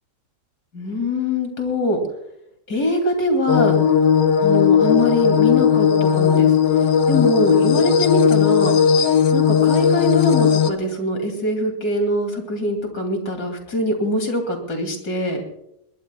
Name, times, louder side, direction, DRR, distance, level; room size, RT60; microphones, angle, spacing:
voice 1, 0.7-2.0 2.7-3.8 4.4-6.5 7.1-8.8 9.3-15.4, left 1 dB, 60° left, 4 dB, 3.3 m, -23 dB
sound 1, 3.5-10.7, left 7 dB, 75° left, 1.6 m, -16 dB
21.0 x 20.5 x 2.3 m, 0.78 s
omnidirectional pair, 2.0 m